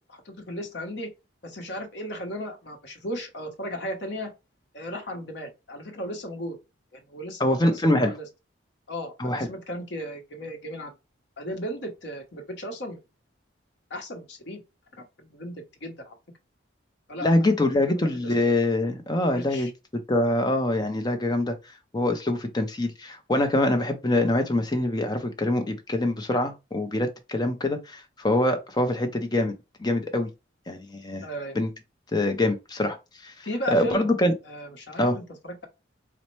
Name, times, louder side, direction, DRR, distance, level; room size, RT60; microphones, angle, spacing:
voice 1, 0.1-1.1 1.4-4.3 4.7-6.6 6.9-8.2 8.9-10.9 11.4-13.0 13.9-14.6 15.2-15.5 15.8-16.1 17.1-17.3 17.9-18.3 19.3-19.7 31.2-31.6 33.4-34.1 34.5-35.7, equal, 60° left, 0.8 m, -35 dB
voice 2, 7.4-8.1 9.2-9.5 17.2-29.5 29.8-30.3 30.7-31.3 31.5-31.7 32.1-33.0 33.2-34.3 35.0-35.2, left 1 dB, 20° left, 0.5 m, -24 dB
4.1 x 2.1 x 3.1 m
head